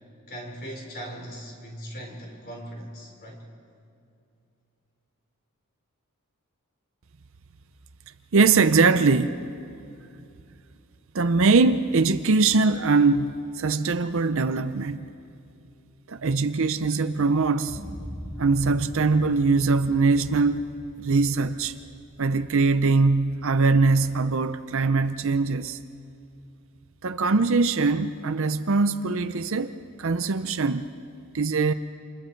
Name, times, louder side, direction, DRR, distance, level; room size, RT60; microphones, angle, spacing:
voice 1, 0.3-3.4, equal, 40° left, 4.1 m, -39 dB
voice 2, 8.3-9.4 11.1-15.0 16.1-17.8 18.4-20.7 21.0-21.7 22.2-25.8 27.0-30.9 31.3-31.7, right 4 dB, 60° right, 0.6 m, -22 dB
sound 1, 17.7-25.5 26.0-26.1, equal, 15° right, 1.7 m, -43 dB
28.0 x 28.0 x 4.6 m
head